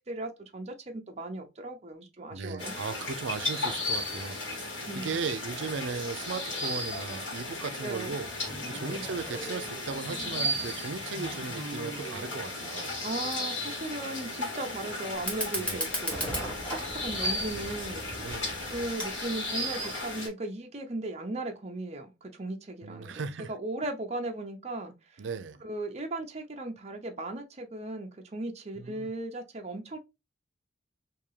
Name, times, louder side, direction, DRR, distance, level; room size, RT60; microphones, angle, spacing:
voice 1, 0.0-2.7 4.8-5.2 7.8-8.2 8.9-9.0 13.0-16.3 16.6-18.0 18.6-25.2 25.6-30.0, right 2 dB, 35° right, 0.7 m, -37 dB
voice 2, 2.3-4.6 4.9-12.9 15.6-15.9 18.2-18.6 22.8-23.5 25.2-25.6 28.8-29.1, right 5 dB, 75° right, 0.5 m, -37 dB
sound 1, 2.6-20.3, left 1 dB, 80° left, 1.9 m, -35 dB
sound 2, 8.5-12.4, equal, 50° left, 1.3 m, -43 dB
Fire, 15.1-20.1, right 1 dB, 5° left, 1.1 m, -37 dB
3.6 x 2.7 x 3.2 m
head